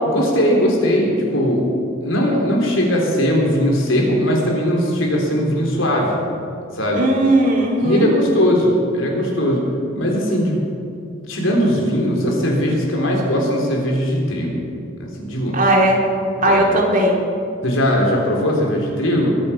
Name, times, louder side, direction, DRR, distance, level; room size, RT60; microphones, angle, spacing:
voice 1, 0.1-1.6 2.0-6.2 6.7-7.1 7.8-9.7 9.9-10.6 11.3-14.6 15.0-15.6 16.4-16.7 17.6-19.3, equal, 80° left, -1 dB, 3.6 m, -19 dB
voice 2, 6.9-8.1 15.5-16.0 16.4-17.2, right 1 dB, 45° right, -1 dB, 2.6 m, -16 dB
22.0 x 8.7 x 5.8 m, 2.7 s
head